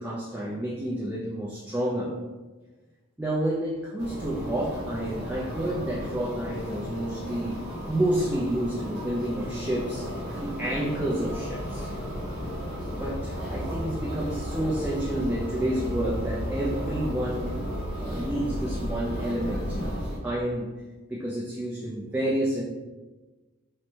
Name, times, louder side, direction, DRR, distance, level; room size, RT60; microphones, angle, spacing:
voice 1, 0.0-2.2 3.2-7.6 7.9-10.1 10.4-11.9 12.9-17.5 18.0-19.8 20.2-20.8 21.1-22.6, right 1 dB, 10° right, -6 dB, 0.3 m, -29 dB
sound 1, 4.0-20.2, equal, 45° left, 1.2 m, -34 dB
4.4 x 2.1 x 2.7 m, 1.2 s
head